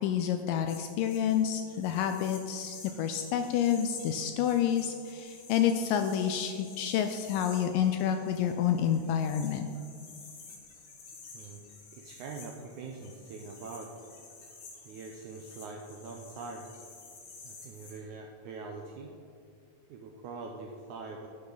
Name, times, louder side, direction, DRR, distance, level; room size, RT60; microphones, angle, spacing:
voice 1, 0.0-9.6, left 9 dB, 80° left, 7 dB, 2.0 m, -29 dB
sound 1, 0.7-18.0, left 4 dB, 60° left, 2.8 m, -51 dB
voice 2, 11.9-14.0 14.9-16.7 17.4-19.1 19.9-21.3, right 4 dB, 80° right, 1 dB, 1.8 m, -43 dB
12.0 x 8.7 x 4.0 m, 2.3 s
omnidirectional pair, 4.2 m